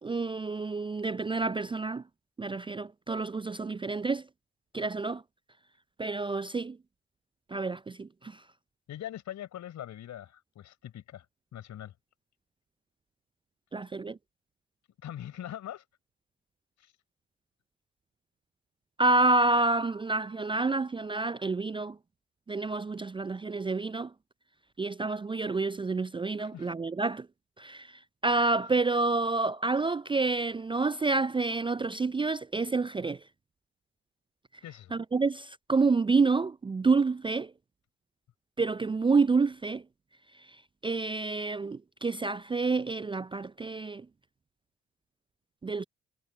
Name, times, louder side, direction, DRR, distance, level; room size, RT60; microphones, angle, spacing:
voice 1, 0.0-2.0 2.4-4.3 4.7-5.2 6.0-6.8 7.5-8.4 13.7-14.2 19.0-22.0 22.5-24.1 24.8-27.3 27.6-33.2 34.9-37.5 38.6-39.8 40.4-40.6 40.8-44.1 45.6-45.8, right 3 dB, 15° right, 0.4 m, -28 dB
voice 2, 8.9-11.3 11.5-11.9 15.0-15.8 16.8-16.9 26.4-26.7 34.6-34.9, left 11 dB, 65° left, 4.5 m, -42 dB
hypercardioid pair, 45°, 31 cm